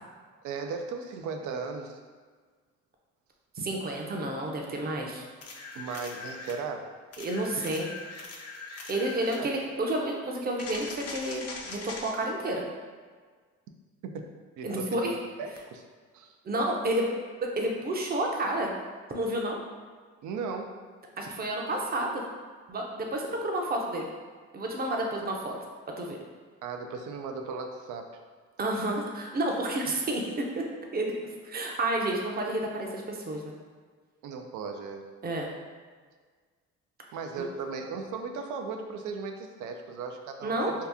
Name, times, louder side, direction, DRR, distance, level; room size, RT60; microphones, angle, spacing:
voice 1, 0.4-2.0 5.7-6.9 9.4-9.6 14.0-14.3 14.6-15.8 16.1-16.3 20.2-20.8 26.6-28.2 34.2-35.1 37.1-40.7, right 4 dB, 80° right, 4 dB, 0.5 m, -37 dB
voice 2, 3.6-5.2 7.2-7.9 8.9-12.6 14.6-15.1 16.4-17.1 17.4-18.7 19.1-19.6 21.2-22.2 22.7-24.1 24.5-25.5 26.0-26.2 28.6-30.2 30.6-30.7 30.9-31.1 31.4-33.5 35.2-35.5 40.4-40.7, right 1 dB, 30° right, 0 dB, 0.6 m, -30 dB
sound 1, 5.4-6.6 7.1-9.4 10.6-12.1 15.6-15.7, left 3 dB, 55° left, 0.6 m, -41 dB
2.8 x 2.4 x 3.5 m, 1.5 s
cardioid pair, 90°, 30 cm